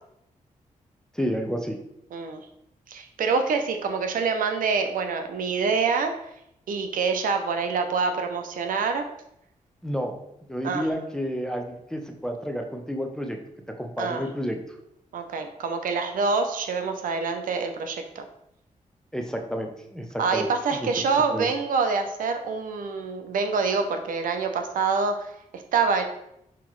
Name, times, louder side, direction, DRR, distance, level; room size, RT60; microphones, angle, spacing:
voice 1, 1.1-1.8 9.8-10.2 10.5-13.4 13.8-14.8 19.1-20.5 21.3-21.5, equal, 5° left, 3 dB, 0.6 m, -30 dB
voice 2, 2.1-2.5 2.9-6.2 6.7-9.1 10.6-10.9 14.0-14.2 15.1-18.2 20.2-26.0, right 5 dB, 90° right, 6 dB, 0.5 m, -26 dB
5.8 x 2.9 x 3.1 m, 0.80 s
cardioid pair, 95°, 14 cm